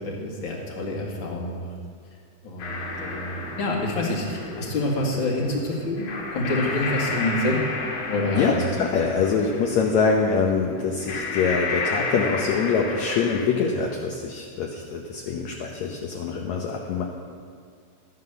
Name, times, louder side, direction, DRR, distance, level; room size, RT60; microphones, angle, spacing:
voice 1, 0.0-1.7 2.4-6.1 6.3-7.6 8.1-8.6, left 2 dB, 40° left, -1 dB, 2.4 m, -27 dB
sound 1, 2.6-13.5, left 3 dB, 85° left, 3.8 m, -32 dB
voice 2, 8.4-17.1, left 5 dB, 70° left, 1 dB, 2.1 m, -24 dB
13.5 x 9.5 x 6.8 m, 2.2 s
omnidirectional pair, 3.7 m